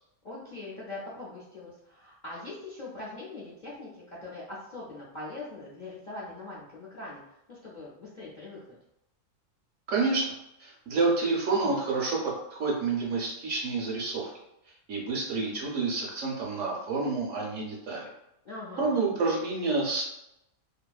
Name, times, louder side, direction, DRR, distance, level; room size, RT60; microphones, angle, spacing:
voice 1, 0.2-8.8 18.4-19.0, left 2 dB, 55° left, -8 dB, 0.5 m, -42 dB
voice 2, 9.9-10.2 10.6-14.3 14.9-18.1 18.8-20.0, right 3 dB, 65° right, -2 dB, 0.9 m, -28 dB
2.7 x 2.5 x 2.3 m, 0.82 s
omnidirectional pair, 1.5 m